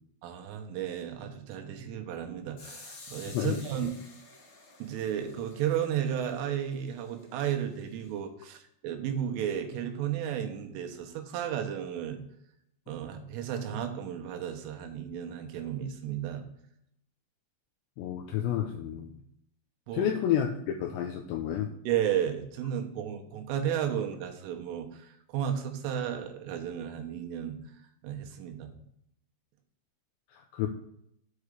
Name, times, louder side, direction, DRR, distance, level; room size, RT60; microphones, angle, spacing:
voice 1, 0.2-3.9 4.8-12.2 12.9-16.4 19.9-20.1 21.9-27.6 28.0-28.8, right 9 dB, 80° right, 4 dB, 3.6 m, -33 dB
sound 1, 2.6-8.2, left 3 dB, 45° left, 2.2 m, -52 dB
voice 2, 3.3-3.9 18.0-19.2 19.9-21.7 30.3-30.7, left 10 dB, 80° left, 4 dB, 2.6 m, -30 dB
8.7 x 4.8 x 6.7 m, 0.73 s
omnidirectional pair, 5.8 m